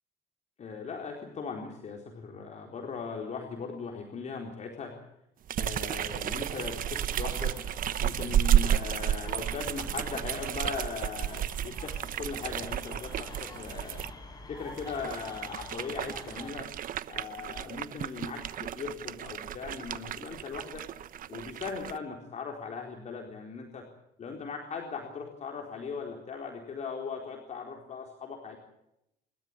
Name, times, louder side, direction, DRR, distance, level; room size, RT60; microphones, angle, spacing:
voice 1, 0.6-5.1 5.6-7.6 8.0-14.0 14.5-16.7 17.1-20.9 21.3-23.9 24.2-28.6, left 5 dB, 45° left, 1 dB, 4.2 m, -39 dB
sound 1, 5.5-14.1 14.7-22.0, right 11 dB, 55° right, 1.1 m, -32 dB
sound 2, 5.9-16.5, left 2 dB, 25° left, 6.9 m, -47 dB
29.0 x 13.5 x 8.8 m, 0.83 s
cardioid pair, 110°, 17 cm